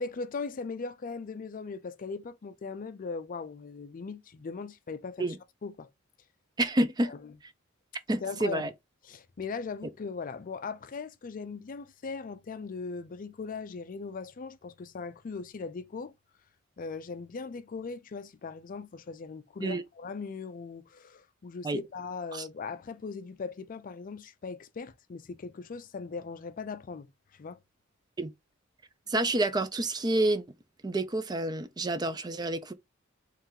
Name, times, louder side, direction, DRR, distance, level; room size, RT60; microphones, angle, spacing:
voice 1, 0.0-5.3 5.6-5.9 7.0-7.3 8.2-8.7 9.1-16.1 16.8-27.6, left 4 dB, 45° left, 0.4 m, -39 dB
voice 2, 6.6-7.1 8.1-8.7 19.6-19.8 21.6-21.8 22.3-22.5 28.2-28.3 29.1-30.4 30.8-32.7, right 1 dB, 20° right, 0.4 m, -28 dB
3.2 x 2.9 x 3.7 m
head